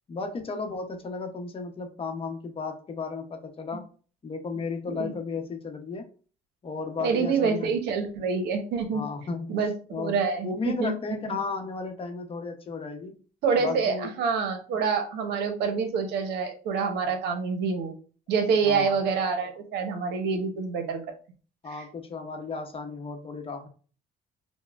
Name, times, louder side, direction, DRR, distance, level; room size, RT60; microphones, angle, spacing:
voice 1, 0.1-3.8 4.2-6.1 6.6-7.7 8.9-9.6 9.9-10.2 10.4-13.2 13.6-14.1 18.6-19.0 21.6-23.7, left 4 dB, 35° left, 5 dB, 0.8 m, -34 dB
voice 2, 7.0-9.0 9.5-10.9 13.4-17.9 18.3-21.0 21.7-21.8, right 5 dB, 80° right, 5 dB, 0.8 m, -27 dB
5.1 x 2.1 x 2.4 m, 0.39 s
cardioid pair, 110°, 17 cm